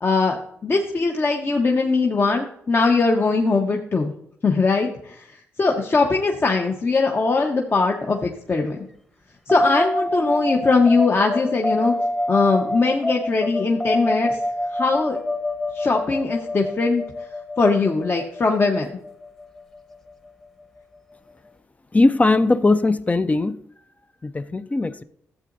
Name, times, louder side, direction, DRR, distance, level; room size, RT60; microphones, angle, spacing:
voice 1, 0.0-4.1 4.4-5.2 5.6-8.8 9.5-11.9 12.3-14.4 14.7-15.2 15.7-17.0 17.6-18.9, left 3 dB, 40° left, 1.0 m, -20 dB
sound 1, 9.5-20.3, left 1 dB, 10° left, 1.0 m, -27 dB
voice 2, 21.9-23.6 24.2-25.0, left 2 dB, 25° left, 0.5 m, -19 dB
12.5 x 7.7 x 2.6 m
cardioid pair, 65°, 6 cm